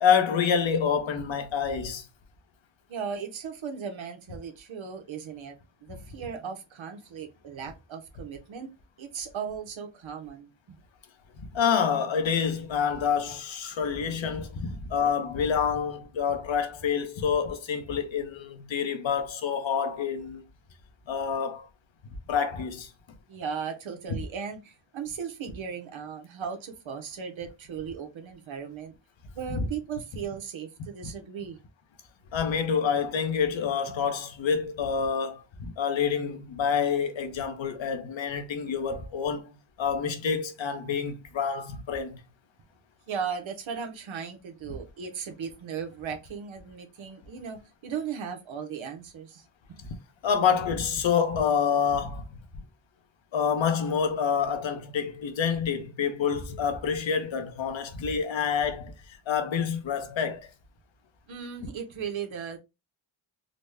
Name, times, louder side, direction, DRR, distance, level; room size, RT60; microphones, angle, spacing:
voice 1, 0.0-2.1 11.4-20.4 21.1-21.7 22.3-22.9 29.5-29.6 32.3-42.2 49.8-49.9 50.2-52.2 53.3-60.5, left 7 dB, 70° left, 1.0 m, -27 dB
voice 2, 2.9-5.6 5.9-8.7 9.0-10.8 13.7-13.8 23.3-28.9 29.3-31.6 43.1-49.4 61.3-62.6, right 7 dB, 70° right, 0.9 m, -37 dB
4.0 x 2.1 x 3.3 m
cardioid pair, 80°, 48 cm